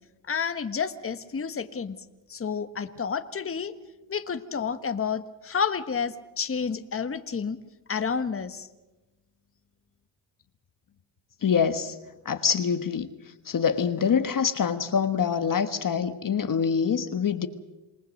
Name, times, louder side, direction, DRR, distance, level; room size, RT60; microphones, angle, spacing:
voice 1, 0.3-2.0 2.3-3.7 4.1-7.6 7.9-8.7, left 6 dB, 30° left, 1.4 m, -30 dB
voice 2, 11.4-12.0 12.2-13.1 13.5-17.5, left 7 dB, 45° left, 1.3 m, -25 dB
28.0 x 19.0 x 6.5 m
cardioid pair, 80°, 45 cm